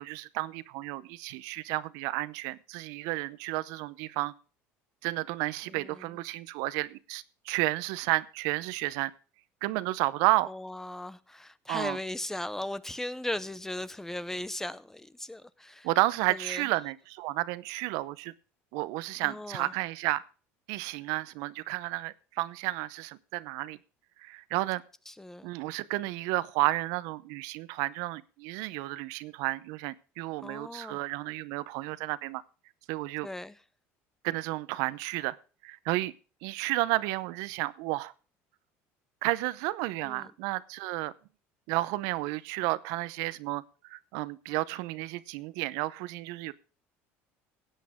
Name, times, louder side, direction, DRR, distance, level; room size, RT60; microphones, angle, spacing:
voice 1, 0.0-4.3 5.0-9.1 9.6-10.5 11.7-12.0 15.8-18.3 18.7-20.2 20.7-23.8 24.2-24.8 25.4-32.4 32.9-33.3 34.2-35.4 35.6-36.1 36.4-38.1 39.2-41.1 41.7-46.5, right 19 dB, 80° right, 0.7 m, -32 dB
voice 2, 5.7-6.1 10.5-15.9 16.3-16.7 19.2-19.7 25.1-25.5 30.4-31.0 33.2-33.6 40.0-40.3, left 1 dB, 5° left, 0.6 m, -38 dB
16.5 x 8.4 x 3.6 m
supercardioid pair, 115°, 6 cm